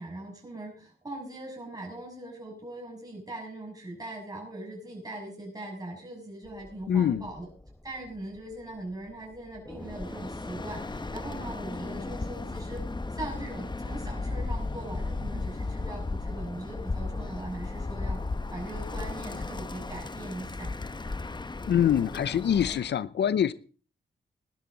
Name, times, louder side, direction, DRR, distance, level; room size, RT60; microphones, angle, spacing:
voice 1, 0.0-7.5 7.8-18.2 18.5-20.7, right 1 dB, 20° right, -2 dB, 6.5 m, -40 dB
sound 1, 6.4-22.8, left 1 dB, 10° left, 1.5 m, -46 dB
voice 2, 6.9-7.3 21.7-23.5, left 9 dB, 85° left, 17 dB, 0.6 m, -24 dB
Bird, 9.8-22.9, left 3 dB, 25° left, 0.9 m, -35 dB
18.5 x 12.5 x 3.9 m, 0.38 s
wide cardioid pair, 90°, 18 cm